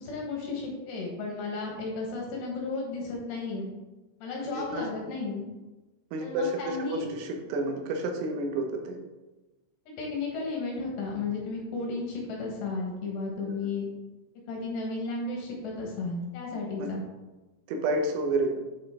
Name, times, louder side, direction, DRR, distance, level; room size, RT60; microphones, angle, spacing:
voice 1, 0.0-3.7 4.2-5.5 6.2-7.1 9.9-13.9 14.5-17.0, left 3 dB, 65° left, -1 dB, 3.3 m, -33 dB
voice 2, 4.6-4.9 6.1-9.0 16.8-16.9 17.7-18.6, right 2 dB, 90° right, 3 dB, 3.8 m, -30 dB
8.7 x 5.9 x 3.7 m, 1.1 s
omnidirectional pair, 5.9 m